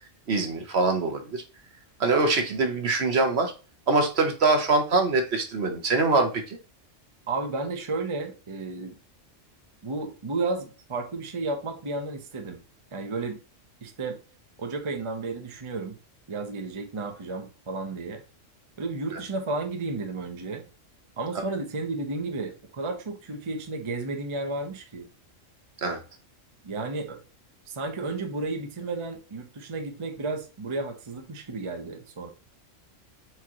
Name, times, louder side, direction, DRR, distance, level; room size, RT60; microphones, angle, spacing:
voice 1, 0.3-1.4 2.0-3.5 3.9-6.6 25.8-26.0, right 3 dB, 60° right, 5 dB, 1.1 m, -23 dB
voice 2, 7.3-8.9 9.8-12.6 12.9-13.4 13.8-14.2 14.6-16.0 16.3-18.2 18.8-20.6 21.2-25.1 26.6-27.2 27.7-32.3, right 3 dB, 30° right, 4 dB, 0.7 m, -32 dB
4.5 x 3.7 x 2.9 m, 0.34 s
omnidirectional pair, 1.3 m